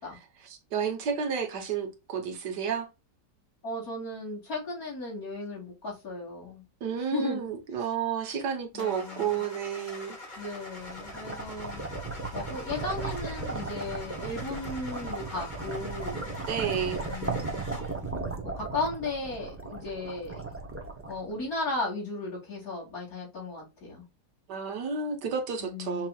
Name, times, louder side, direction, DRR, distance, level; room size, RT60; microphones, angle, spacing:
voice 1, 0.4-2.9 6.8-10.2 16.5-17.0 24.5-26.1, right 7 dB, 80° right, 1.7 m, -31 dB
voice 2, 3.6-6.6 7.0-7.5 8.7-9.4 10.4-11.8 12.3-16.3 17.0-17.6 18.5-20.4 21.1-24.1 25.6-26.1, left 2 dB, 55° left, 3.3 m, -36 dB
Car / Engine starting, 8.8-18.1, left 1 dB, 30° left, 1.4 m, -44 dB
sound 1, 10.5-21.7, right 3 dB, 20° right, 0.3 m, -36 dB
5.8 x 2.9 x 2.3 m
omnidirectional pair, 1.8 m